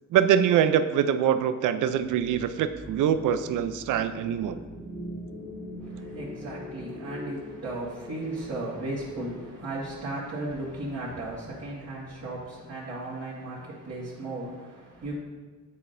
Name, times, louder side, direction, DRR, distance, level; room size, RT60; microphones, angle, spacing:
voice 1, 0.1-4.6, right 9 dB, 75° right, 11 dB, 0.5 m, -24 dB
sound 1, 1.9-10.2, equal, 30° left, 1.3 m, -43 dB
voice 2, 5.8-15.1, right 2 dB, 50° right, -10 dB, 1.7 m, -35 dB
9.4 x 4.2 x 2.6 m, 1.4 s
cardioid pair, 105°, 31 cm